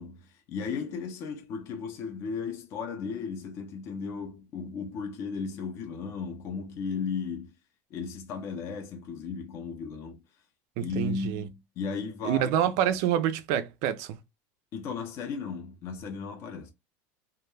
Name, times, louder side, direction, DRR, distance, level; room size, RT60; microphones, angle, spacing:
voice 1, 0.0-7.5 7.9-10.2 10.8-12.5 14.7-16.7, left 5 dB, 35° left, 0.5 m, -35 dB
voice 2, 10.8-11.4 12.2-14.2, right 10 dB, 50° right, 0.4 m, -27 dB
2.2 x 2.1 x 3.1 m
cardioid pair, 175°, 8 cm